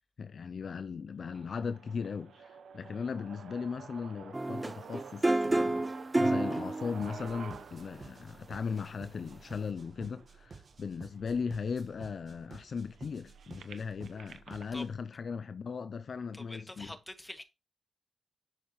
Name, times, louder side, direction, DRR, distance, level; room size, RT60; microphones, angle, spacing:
voice 1, 0.2-5.9 6.2-17.0, left 5 dB, 65° left, 0.6 m, -38 dB
sound 1, 1.2-11.2 11.8-11.9 12.2-14.6, right 6 dB, 85° right, 1.0 m, -51 dB
sound 2, 4.3-7.3 8.8-8.9, right 2 dB, 20° right, 0.6 m, -29 dB
sound 3, 7.0-15.0, right 4 dB, 55° right, 1.7 m, -53 dB
voice 2, 16.3-17.4, left 1 dB, 10° left, 2.3 m, -45 dB
11.0 x 7.1 x 3.2 m
cardioid pair, 60°, 0 cm